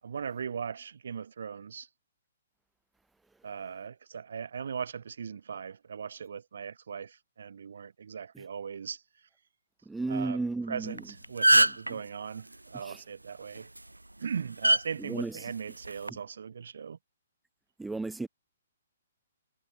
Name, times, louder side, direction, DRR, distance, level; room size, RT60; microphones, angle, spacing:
voice 1, 0.0-1.9 3.4-9.0 10.1-13.7 14.2-17.0, right 7 dB, 60° right, 8.0 m, -39 dB
voice 2, 9.9-10.9 12.8-13.0 15.1-15.3 17.8-18.3, right 3 dB, 5° right, 4.8 m, -33 dB
Sonic Snap Sint-Laurens, 10.9-11.0 11.2-11.9 13.6-13.8 14.6-14.8 15.8-16.1, right 1 dB, 85° right, 1.0 m, -21 dB
figure-of-eight pair, 125°, 0 cm